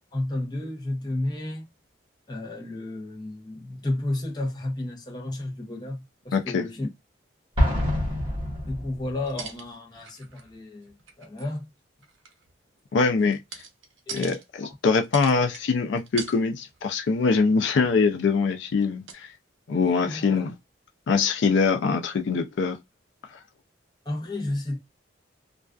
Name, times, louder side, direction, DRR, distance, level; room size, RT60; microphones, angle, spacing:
voice 1, 0.1-1.7 2.3-6.9 8.6-11.7 14.1-14.4 19.7-20.3 24.0-24.8, left 1 dB, 20° left, 0.6 m, -32 dB
voice 2, 6.3-6.6 12.9-13.6 14.1-19.3 19.7-20.6 21.1-22.8 23.3-23.4, left 4 dB, 70° left, 0.4 m, -23 dB
Explosion, 7.6-9.3, equal, 25° right, 0.8 m, -26 dB
sound 1, 9.3-10.6 10.8-11.6 12.0-14.4 15.0-15.7 16.0-16.4 16.7-16.9 17.3-18.1 18.8-18.9 19.1-19.2, right 6 dB, 80° right, 0.6 m, -41 dB
2.4 x 2.3 x 2.3 m
head